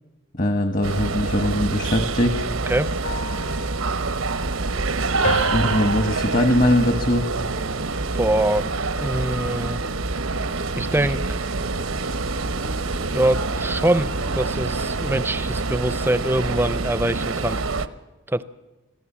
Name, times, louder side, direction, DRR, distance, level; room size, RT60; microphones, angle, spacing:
voice 1, 0.3-2.4 5.5-7.3, left 1 dB, 40° left, 6 dB, 1.3 m, -21 dB
sound 1, 0.8-17.9, right 3 dB, 80° right, 1.0 m, -26 dB
sound 2, 3.0-4.9 5.2-7.8 8.3-8.6, equal, 75° left, 3.3 m, -33 dB
voice 2, 8.1-8.7 9.0-9.8 10.8-11.3 12.8-17.6 18.3-18.4, right 1 dB, 10° right, 14 dB, 0.6 m, -23 dB
26.0 x 16.5 x 7.3 m, 1.1 s
head